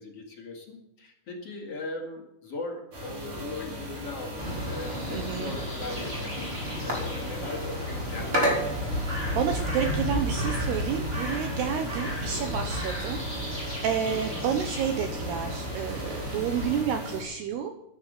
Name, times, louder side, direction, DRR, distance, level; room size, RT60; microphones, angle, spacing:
voice 1, 0.0-8.7, left 3 dB, 40° left, 0 dB, 2.5 m, -39 dB
sound 1, 2.9-17.2, equal, 30° right, 4.4 m, -38 dB
sound 2, 4.4-16.8, equal, 15° right, 3.9 m, -32 dB
voice 2, 5.1-5.6 9.4-17.7, right 7 dB, 75° right, 7 dB, 2.6 m, -30 dB
12.0 x 11.5 x 6.7 m, 0.83 s
omnidirectional pair, 5.6 m